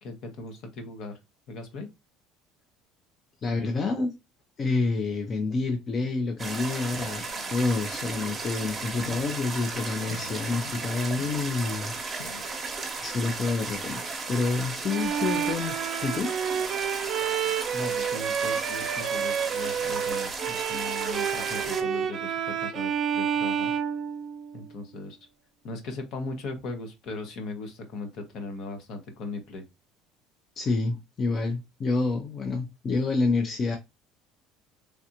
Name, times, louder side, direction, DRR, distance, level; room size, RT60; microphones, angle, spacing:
voice 1, 0.0-1.2 1.5-1.9 17.7-23.7 24.5-25.2 25.6-29.6, left 2 dB, 60° left, 0.9 m, -38 dB
voice 2, 3.4-4.1 4.6-11.9 13.0-14.0 14.3-16.3 30.6-33.8, left 3 dB, 35° left, 0.5 m, -28 dB
sound 1, 6.4-21.8, right 4 dB, 25° right, 0.9 m, -35 dB
sound 2, 6.9-12.5, left 8 dB, 90° left, 0.4 m, -48 dB
Bowed string instrument, 14.9-24.7, right 8 dB, 45° right, 0.5 m, -29 dB
3.3 x 2.4 x 2.8 m
supercardioid pair, 110°, 0 cm